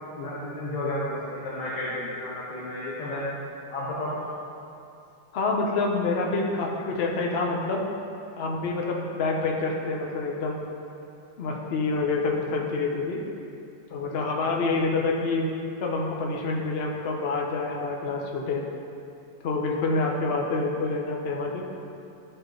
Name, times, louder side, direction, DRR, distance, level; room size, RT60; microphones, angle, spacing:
voice 1, 0.2-3.3 3.7-4.1, left 1 dB, 55° left, -7 dB, 1.7 m, -32 dB
voice 2, 5.3-7.9 8.4-10.6 11.4-13.2 13.9-15.5 15.8-18.6 19.4-21.6, left 3 dB, 90° left, -1 dB, 0.5 m, -27 dB
12.5 x 4.3 x 3.9 m, 2.7 s
omnidirectional pair, 2.3 m